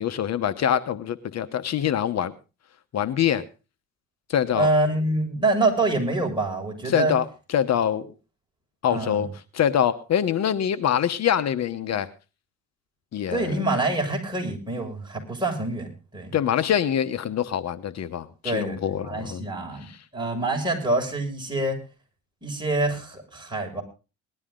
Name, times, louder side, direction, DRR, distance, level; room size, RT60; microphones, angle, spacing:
voice 1, 0.0-2.3 2.9-3.5 4.3-4.7 6.9-7.2 7.5-8.1 8.8-9.3 9.5-12.1 13.1-13.6 16.3-19.4, left 9 dB, 60° left, 12 dB, 1.0 m, -24 dB
voice 2, 4.5-7.1 8.9-9.3 13.3-16.3 18.4-21.8 22.4-23.8, right 2 dB, 15° right, 1 dB, 6.6 m, -26 dB
19.5 x 12.0 x 3.8 m, 0.33 s
cardioid pair, 90°, 30 cm